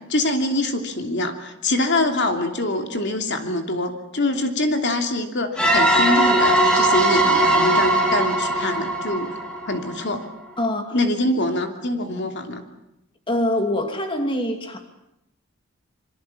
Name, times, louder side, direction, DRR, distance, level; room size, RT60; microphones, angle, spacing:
voice 1, 0.1-9.4 9.7-10.2 10.9-12.6, left 1 dB, 55° left, 5 dB, 2.9 m, -24 dB
sound 1, 5.6-10.1, right 1 dB, 5° left, 4.4 m, -19 dB
voice 2, 10.6-11.0 13.3-14.8, left 1 dB, 25° left, 5 dB, 2.7 m, -24 dB
27.0 x 25.0 x 7.3 m, 0.86 s
head